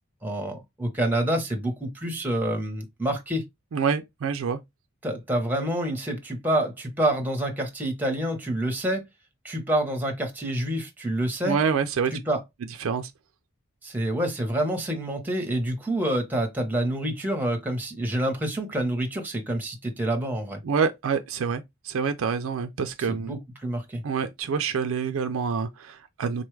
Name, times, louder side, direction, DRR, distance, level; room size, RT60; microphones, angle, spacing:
voice 1, 0.2-3.4 5.0-9.0 9.4-11.6 12.1-12.4 13.8-20.6 23.1-24.0, right 1 dB, 10° right, 0.8 m, -27 dB
voice 2, 3.7-4.6 11.4-12.1 12.8-13.1 20.6-23.3 24.0-26.4, right 6 dB, 65° right, 0.4 m, -27 dB
4.0 x 2.3 x 3.1 m
head